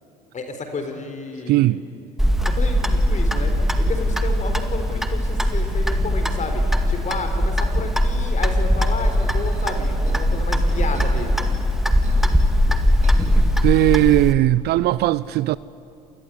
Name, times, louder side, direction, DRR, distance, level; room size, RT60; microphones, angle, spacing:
voice 1, 0.3-1.8 2.5-3.5 3.8-11.5, left 3 dB, 35° left, 4.0 m, -31 dB
voice 2, 1.5-1.8 13.6-15.6, right 17 dB, 55° right, 0.5 m, -18 dB
Clock, 2.2-14.3, equal, ahead, 2.2 m, -20 dB
sound 1, 9.0-14.0, right 3 dB, 35° right, 4.8 m, -43 dB
27.0 x 19.5 x 9.9 m
hypercardioid pair, 65°, 21 cm